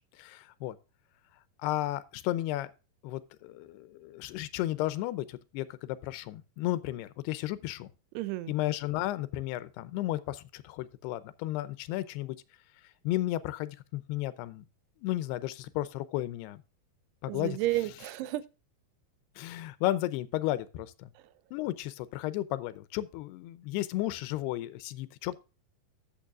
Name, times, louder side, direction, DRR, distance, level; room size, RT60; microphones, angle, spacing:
voice 1, 0.2-0.8 1.6-2.7 3.0-7.9 8.5-12.4 13.0-14.6 15.0-16.6 17.2-17.6 19.4-21.1 21.5-25.3, left 15 dB, 90° left, 2.8 m, -33 dB
voice 2, 8.2-8.5 17.3-18.4, right 16 dB, 90° right, 2.8 m, -31 dB
13.0 x 7.2 x 2.4 m
omnidirectional pair, 4.6 m